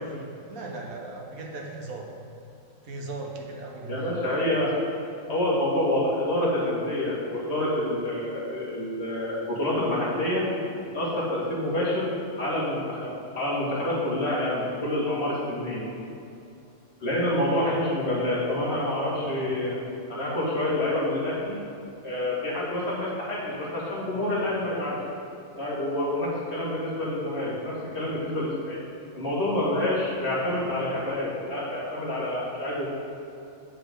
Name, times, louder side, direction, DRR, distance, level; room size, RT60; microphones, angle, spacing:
voice 1, 0.0-2.1 2.8-4.4 17.5-17.7, right 2 dB, 50° right, 0 dB, 1.3 m, -38 dB
voice 2, 3.9-4.7 5.3-10.4 10.9-12.1 12.4-15.8 17.0-19.8 20.1-21.6 22.0-25.0 25.6-28.8 29.1-32.9, left 1 dB, 30° left, -7 dB, 2.2 m, -27 dB
7.8 x 6.6 x 5.3 m, 2.8 s
omnidirectional pair, 2.2 m